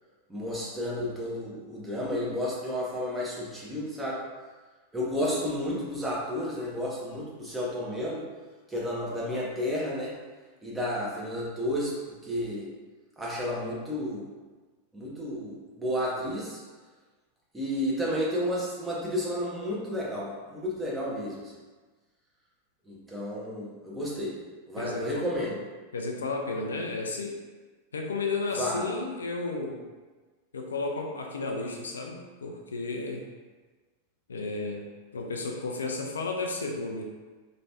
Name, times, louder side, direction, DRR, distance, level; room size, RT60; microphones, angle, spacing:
voice 1, 0.3-4.2 4.9-8.2 8.7-10.1 10.6-12.7 13.2-14.2 14.9-16.6 17.5-21.5 22.9-24.4 24.7-25.6 28.6-28.9, equal, 10° right, -6 dB, 1.0 m, -32 dB
voice 2, 24.8-25.3 25.9-27.4 27.9-29.8 30.5-33.2 34.3-34.8 35.1-37.0, left 3 dB, 70° left, 2 dB, 0.4 m, -33 dB
3.2 x 3.0 x 2.8 m, 1.3 s
figure-of-eight pair, 90°, 0 cm